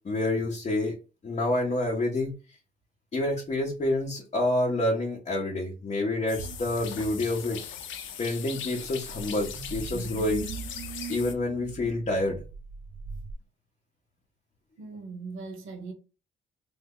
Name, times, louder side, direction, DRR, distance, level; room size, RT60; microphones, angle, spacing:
voice 1, 0.0-0.9 1.2-2.3 3.1-7.6 8.2-10.5 11.1-12.4, left 2 dB, 35° left, 0.9 m, -28 dB
sound 1, 6.3-11.3, left 9 dB, 75° left, 0.6 m, -40 dB
sound 2, 6.4-13.4, right 5 dB, 45° right, 0.5 m, -40 dB
voice 2, 14.8-15.9, right 4 dB, 80° right, 1.0 m, -39 dB
3.4 x 2.1 x 3.6 m
cardioid pair, 90°, 20 cm